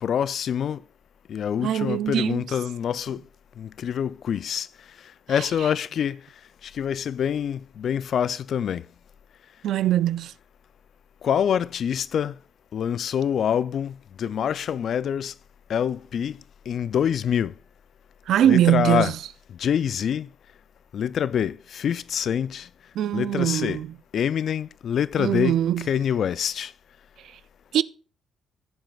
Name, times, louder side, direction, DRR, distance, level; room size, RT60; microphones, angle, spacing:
voice 1, 0.0-0.8 1.3-3.2 3.6-4.7 5.3-6.2 6.6-8.9 11.2-12.4 12.7-15.3 15.7-16.4 16.7-17.5 18.4-19.1 19.6-20.3 20.9-22.7 23.1-23.8 24.1-26.7, left 8 dB, 60° left, 0.4 m, -26 dB
voice 2, 1.6-2.4 5.4-5.5 9.6-10.3 18.3-19.1 23.0-23.9 25.2-25.9 27.7-27.8, right 11 dB, 75° right, 0.3 m, -22 dB
17.5 x 7.4 x 2.3 m
cardioid pair, 90°, 0 cm